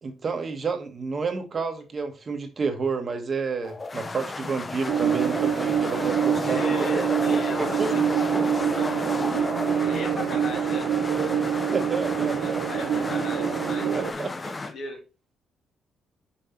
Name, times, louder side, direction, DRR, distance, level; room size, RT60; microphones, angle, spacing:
voice 1, 0.0-7.2 7.6-8.1 10.3-10.6 11.7-13.1 13.9-14.6, right 4 dB, 40° right, 1.2 m, -30 dB
sound 1, 3.6-14.7, left 3 dB, 25° left, 0.5 m, -33 dB
sound 2, 4.9-14.1, right 8 dB, 75° right, 0.8 m, -25 dB
voice 2, 6.4-8.3 8.6-8.9 9.6-10.9 12.4-15.0, left 3 dB, 65° left, 2.5 m, -38 dB
5.7 x 4.5 x 4.3 m
cardioid pair, 90°, 0 cm